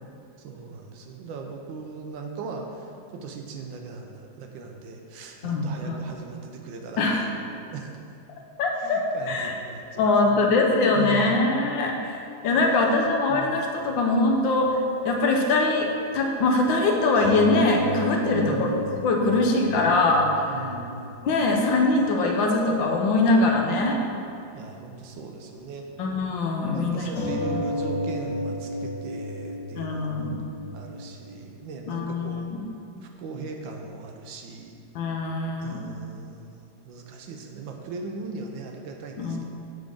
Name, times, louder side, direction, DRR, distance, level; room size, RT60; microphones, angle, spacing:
voice 1, 0.4-8.0 8.8-10.5 10.9-11.4 12.5-13.6 18.3-18.9 20.4-21.1 24.5-25.9 26.7-30.3 30.7-32.5 33.0-34.8 35.6-36.5 36.8-39.4, right 4 dB, 75° right, 2 dB, 1.3 m, -39 dB
voice 2, 5.4-6.0 7.0-7.3 8.6-9.5 10.0-14.8 15.0-15.9 16.1-18.7 19.0-20.5 21.2-24.0 26.0-27.6 29.8-30.4 31.9-32.7 34.9-35.8 39.2-39.4, left 2 dB, 75° left, 1 dB, 1.4 m, -23 dB
sound 1, 14.1-14.2 17.1-22.2 22.5-22.9 23.3-23.4 27.1-31.7, equal, 40° left, 1.4 m, -32 dB
7.6 x 3.5 x 5.1 m, 2.4 s
omnidirectional pair, 2.2 m